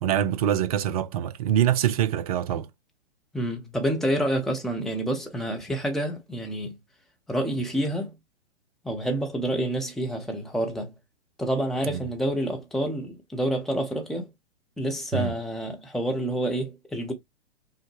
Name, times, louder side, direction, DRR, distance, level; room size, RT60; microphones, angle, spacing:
voice 1, 0.0-2.7 15.1-15.3, right 10 dB, 35° right, 0.4 m, -24 dB
voice 2, 3.3-6.8 7.3-8.1 8.8-10.9 11.4-14.3 14.8-17.1, right 1 dB, ahead, 0.6 m, -28 dB
5.4 x 2.1 x 3.1 m
figure-of-eight pair, 120°, 36 cm